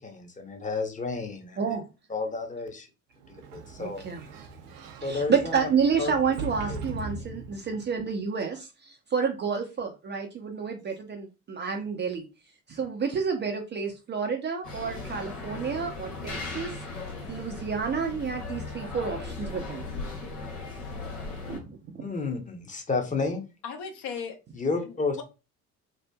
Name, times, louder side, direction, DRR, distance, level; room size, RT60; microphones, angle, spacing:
voice 1, 0.0-1.6 2.1-2.9 3.3-4.0 5.0-5.6 6.0-6.1 6.7-6.8 22.0-23.4 24.5-25.2, left 3 dB, 15° left, 0.7 m, -31 dB
voice 2, 1.6-1.9 3.8-4.3 5.0-12.3 12.7-16.8 17.3-19.9 21.5-22.1, right 6 dB, 25° right, 0.4 m, -30 dB
Sliding door, 3.2-7.9, right 3 dB, 70° right, 0.6 m, -40 dB
sound 1, 14.6-21.6, left 3 dB, 85° left, 0.8 m, -37 dB
voice 3, 23.6-24.4 24.8-25.2, left 6 dB, 55° left, 0.7 m, -37 dB
2.7 x 2.4 x 2.2 m
figure-of-eight pair, 55°, 46 cm